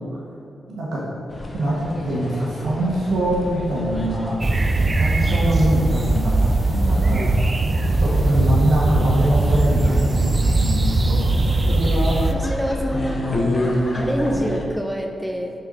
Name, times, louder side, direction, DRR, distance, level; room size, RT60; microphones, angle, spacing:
voice 1, 0.7-1.0 1.5-4.4 5.0-7.3 8.0-12.2 12.9-14.4, right 1 dB, 85° right, -7 dB, 1.5 m, -24 dB
sound 1, 1.3-14.7, left 1 dB, 40° left, 0.9 m, -31 dB
sound 2, 4.4-12.3, right 2 dB, 30° right, 0.4 m, -20 dB
voice 2, 6.9-7.3 12.2-13.2 13.5-13.6 13.9-15.5, equal, 5° right, 2 dB, 0.8 m, -26 dB
6.8 x 4.7 x 4.0 m, 2.7 s
cardioid pair, 75°, 0 cm